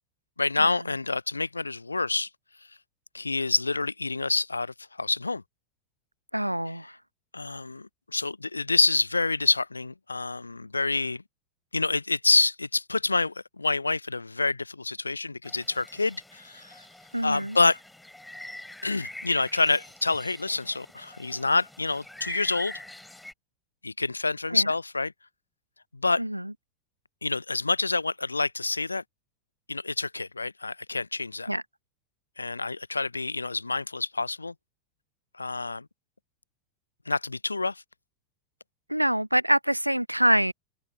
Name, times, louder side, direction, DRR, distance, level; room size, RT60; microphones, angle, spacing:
voice 1, 0.4-2.3 3.1-5.4 7.3-11.2 11.7-16.8 17.2-17.8 18.8-22.7 23.8-25.1 25.9-26.2 27.2-29.0 29.7-31.5 32.4-34.5 35.4-35.9 37.1-37.8, left 3 dB, 80° left, 0.5 m, -27 dB
voice 2, 6.3-7.0 17.1-17.6 24.5-24.7 26.2-26.5 31.5-31.6 38.9-40.5, right 1 dB, 90° right, 0.5 m, -25 dB
sound 1, 15.4-23.3, left 1 dB, 5° left, 5.5 m, -45 dB
figure-of-eight pair, 90°, 0 cm